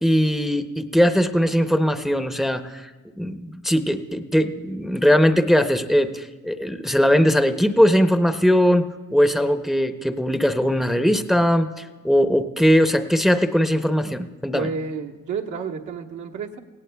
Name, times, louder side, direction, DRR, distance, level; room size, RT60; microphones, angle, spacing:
voice 1, 0.0-2.9 3.2-14.7, equal, ahead, 8 dB, 0.6 m, -20 dB
voice 2, 14.5-16.6, right 5 dB, 75° right, 1 dB, 1.2 m, -30 dB
17.5 x 17.5 x 2.2 m, 1.3 s
cardioid pair, 90°, 30 cm